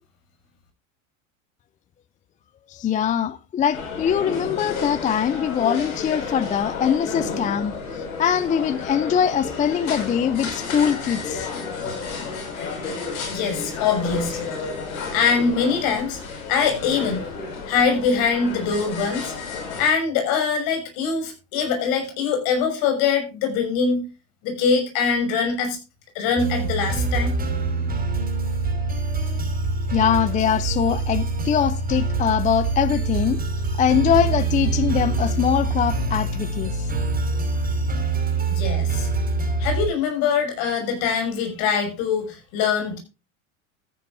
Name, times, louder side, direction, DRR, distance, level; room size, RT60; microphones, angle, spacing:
voice 1, 2.7-11.5 29.9-33.4 33.7-36.9, left 8 dB, 20° left, 0.4 m, -22 dB
sound 1, 3.7-19.9, left 4 dB, 85° left, 5.7 m, -32 dB
voice 2, 13.3-14.5 15.1-16.2 16.5-17.2 17.7-19.3 19.7-24.0 24.4-25.8 26.1-27.3 38.5-39.1 39.6-43.0, left 6 dB, 60° left, 6.4 m, -23 dB
sound 2, 26.4-39.9, right 3 dB, 20° right, 5.2 m, -25 dB
14.5 x 10.5 x 2.6 m
supercardioid pair, 110°, 41 cm